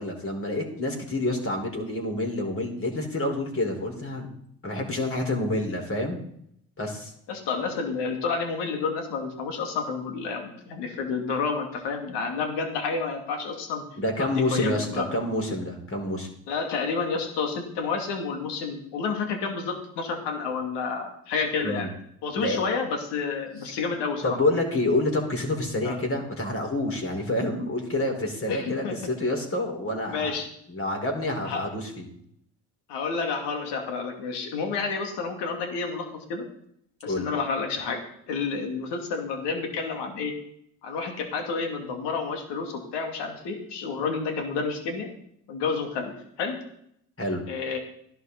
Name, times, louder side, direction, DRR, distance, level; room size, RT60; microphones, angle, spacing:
voice 1, 0.0-4.3 4.6-6.2 6.8-7.1 14.0-16.3 21.6-21.9 22.4-22.6 24.2-30.3 30.7-32.1 37.0-37.3 47.2-47.4, left 1 dB, 30° left, 2 dB, 4.7 m, -28 dB
voice 2, 7.3-13.8 14.2-15.2 16.5-21.9 22.2-24.4 25.8-26.0 28.5-28.9 30.1-30.5 31.4-31.6 32.9-36.4 37.0-38.0 38.3-40.3 40.8-45.1 45.5-46.6 47.5-47.8, left 5 dB, 70° left, 4 dB, 2.8 m, -30 dB
15.5 x 11.0 x 4.2 m, 0.70 s
hypercardioid pair, 60°, 43 cm